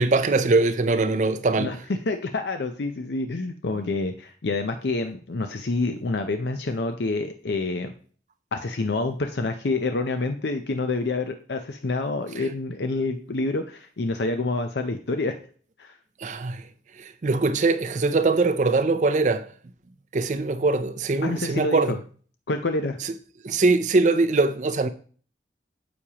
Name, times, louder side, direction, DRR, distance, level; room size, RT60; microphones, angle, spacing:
voice 1, 0.0-1.7 12.4-12.5 16.2-16.7 17.0-19.5 20.1-22.0 23.0-23.1 23.4-24.9, right 3 dB, 40° right, 0.4 m, -22 dB
voice 2, 1.6-7.9 8.5-15.4 15.8-16.0 21.2-22.0 22.5-23.0, left 3 dB, 70° left, 0.6 m, -27 dB
9.5 x 7.1 x 2.9 m
head